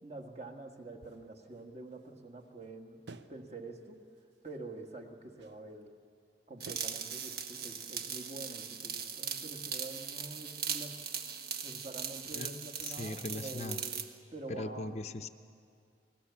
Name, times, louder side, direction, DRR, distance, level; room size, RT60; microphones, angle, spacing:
voice 1, 0.0-3.0 3.3-4.1 4.4-5.9 6.5-11.0 11.6-14.0 14.3-14.9, right 2 dB, 35° right, 3 dB, 1.7 m, -46 dB
sound 1, 1.0-2.7 3.1-3.5 3.8-5.0 5.4-5.8 6.7-6.8, right 3 dB, 80° right, 0.8 m, -54 dB
sound 2, 6.6-14.1, right 7 dB, 60° right, 1.3 m, -39 dB
voice 2, 12.3-13.8 14.5-15.3, left 2 dB, 40° left, 8 dB, 0.7 m, -40 dB
29.0 x 20.0 x 7.2 m, 2.3 s
head